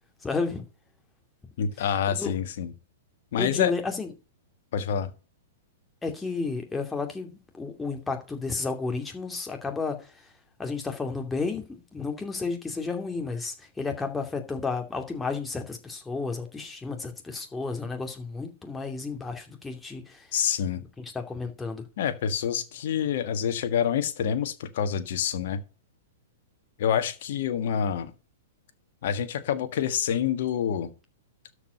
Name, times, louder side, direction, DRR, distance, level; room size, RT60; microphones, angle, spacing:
voice 1, 0.2-0.6 2.1-2.3 3.4-4.1 6.0-10.0 10.6-11.6 11.9-20.3 21.0-21.8, left 4 dB, 10° left, 2.5 m, -32 dB
voice 2, 1.6-2.7 3.3-3.7 4.7-5.1 20.3-20.8 22.0-25.6 26.8-28.1 29.0-30.9, left 8 dB, 55° left, 1.6 m, -27 dB
13.0 x 5.0 x 6.6 m
figure-of-eight pair, 110°, 0 cm